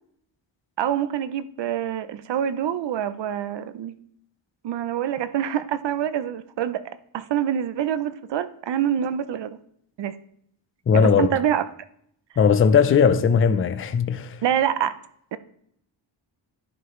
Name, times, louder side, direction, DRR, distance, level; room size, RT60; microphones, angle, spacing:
voice 1, 0.8-3.9 4.6-9.6 10.0-10.1 10.9-11.6 14.4-14.9 15.3-15.4, right 10 dB, 65° right, 0.6 m, -26 dB
voice 2, 10.9-11.4 12.4-14.4, left 6 dB, 30° left, 0.4 m, -18 dB
11.0 x 4.7 x 3.1 m
wide cardioid pair, 145°, 48 cm